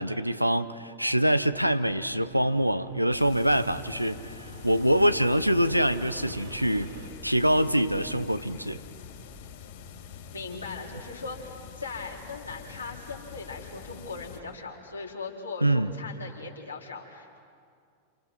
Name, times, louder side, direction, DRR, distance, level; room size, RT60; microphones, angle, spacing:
voice 1, 0.0-6.9 7.2-8.8 15.6-15.9, equal, 90° right, 0.9 m, -25 dB
Fixed-wing aircraft airplane, 1.3-7.1, right 3 dB, 70° right, 4.0 m, -47 dB
sound 1, 3.1-14.4, left 7 dB, 50° left, 3.9 m, -45 dB
voice 2, 10.3-17.4, left 4 dB, 80° left, 4.2 m, -39 dB
29.0 x 28.5 x 6.2 m
figure-of-eight pair, 90°, 0 cm